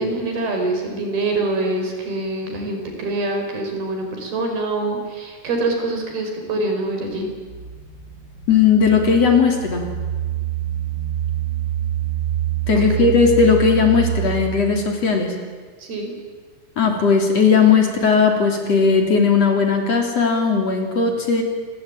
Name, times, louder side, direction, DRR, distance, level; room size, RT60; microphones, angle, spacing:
voice 1, 0.0-7.3 12.9-13.1 15.8-16.1, right 2 dB, 75° right, 3 dB, 6.7 m, -25 dB
sound 1, 7.1-15.0, right 12 dB, 20° right, 2.4 m, -26 dB
voice 2, 8.5-9.9 12.7-15.3 16.8-21.4, left 5 dB, 45° left, 3 dB, 4.0 m, -17 dB
28.5 x 22.5 x 8.9 m, 1.5 s
omnidirectional pair, 4.5 m